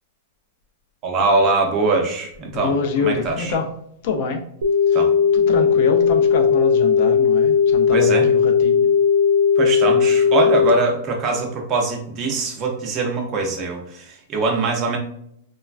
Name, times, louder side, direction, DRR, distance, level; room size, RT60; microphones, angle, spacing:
voice 1, 1.0-2.7 3.0-3.5 4.9-5.1 7.9-8.3 9.6-15.0, right 3 dB, 20° right, 2 dB, 0.4 m, -22 dB
voice 2, 2.5-3.7 4.0-4.4 4.9-5.0 5.3-8.9, left 4 dB, 40° left, 4 dB, 0.4 m, -25 dB
sound 1, 4.6-10.7, left 6 dB, 85° right, 0.4 m, -16 dB
3.1 x 2.2 x 2.3 m, 0.71 s
supercardioid pair, 175°, 0 cm